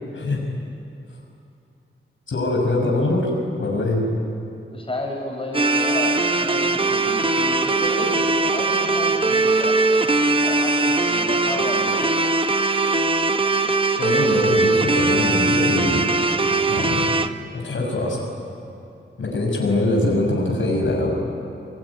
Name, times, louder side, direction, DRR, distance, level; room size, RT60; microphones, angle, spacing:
voice 1, 2.3-3.3 3.6-4.1 14.0-16.1 16.7-17.1 17.5-18.3 19.2-21.1, left 2 dB, 75° left, -1 dB, 5.8 m, -23 dB
voice 2, 4.7-9.8 10.4-12.1 19.6-19.8, left 1 dB, 25° left, 0 dB, 5.9 m, -32 dB
sound 1, 5.5-17.3, right 3 dB, 25° right, 1.1 m, -20 dB
26.5 x 20.5 x 9.9 m, 2.6 s
wide cardioid pair, 80°, 21 cm